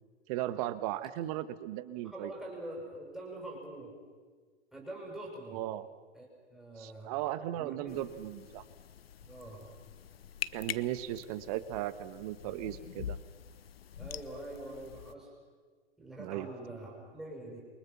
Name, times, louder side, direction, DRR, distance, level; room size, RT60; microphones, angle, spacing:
voice 1, 0.3-2.3 5.5-5.9 6.8-8.6 10.5-13.2 16.2-16.5, right 14 dB, 35° right, 15 dB, 1.2 m, -36 dB
voice 2, 2.0-4.0 4.7-5.6 6.1-7.1 7.5-8.2 9.2-9.7 14.0-15.3 16.0-17.7, right 1 dB, ahead, -3 dB, 5.7 m, -45 dB
sound 1, 7.9-15.1, left 9 dB, 60° left, 0.9 m, -45 dB
28.5 x 23.5 x 6.0 m, 1.5 s
figure-of-eight pair, 110°, 34 cm